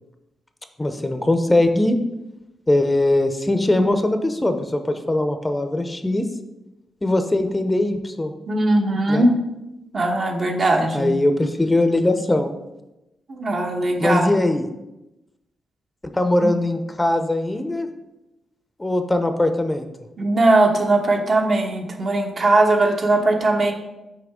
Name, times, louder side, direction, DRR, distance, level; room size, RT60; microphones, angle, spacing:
voice 1, 0.8-2.0 2.7-6.3 7.0-8.3 9.1-9.3 10.9-12.5 14.0-14.6 16.1-17.9 18.8-19.8, left 1 dB, 20° left, 7 dB, 0.6 m, -20 dB
voice 2, 8.5-9.3 9.9-11.1 13.3-14.3 16.4-16.6 20.2-23.7, right 2 dB, 55° right, 2 dB, 1.1 m, -19 dB
6.0 x 4.7 x 3.6 m, 0.96 s
supercardioid pair, 50°, 0 cm